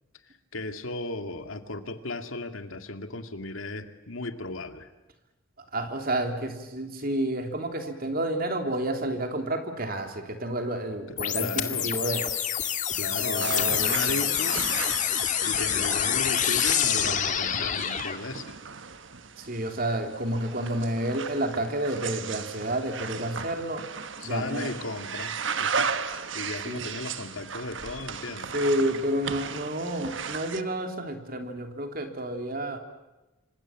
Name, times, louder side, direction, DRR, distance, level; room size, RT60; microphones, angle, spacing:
voice 1, 0.3-4.9 11.1-12.0 12.9-14.7 15.4-18.6 24.2-28.5, left 2 dB, 85° left, 7 dB, 2.3 m, -36 dB
voice 2, 5.7-12.2 13.2-14.2 19.4-23.8 24.2-24.7 26.6-26.9 28.5-32.8, right 1 dB, 45° right, 5 dB, 3.4 m, -30 dB
sound 1, 11.2-18.2, left 9 dB, 40° left, 2.0 m, -27 dB
sound 2, 13.3-30.6, right 6 dB, 65° right, 1.3 m, -36 dB
26.5 x 25.5 x 7.5 m, 1.1 s
head